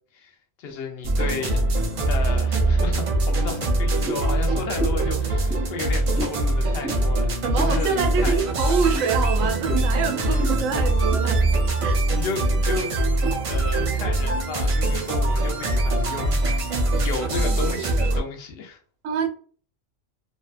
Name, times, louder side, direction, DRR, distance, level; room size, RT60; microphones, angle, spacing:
voice 1, 0.0-1.6 2.1-8.4 10.3-10.5 12.1-12.9 13.4-18.8, left 4 dB, 60° left, 0.8 m, -33 dB
sound 1, 1.0-18.2, right 2 dB, 60° right, 0.3 m, -23 dB
sound 2, 4.0-4.3 4.7-5.1 5.5-5.6 6.1-6.4 6.8-7.0 7.5-7.8 8.2-8.4 8.9-9.1 9.7-9.9 10.4-10.6 11.1-11.3 11.6-11.9 12.5-12.6 13.2-13.3, right 2 dB, 15° right, 0.6 m, -32 dB
voice 2, 7.4-11.4 11.8-12.0 19.0-19.3, right 6 dB, 85° right, 1.0 m, -25 dB
2.6 x 2.2 x 2.4 m
omnidirectional pair, 1.3 m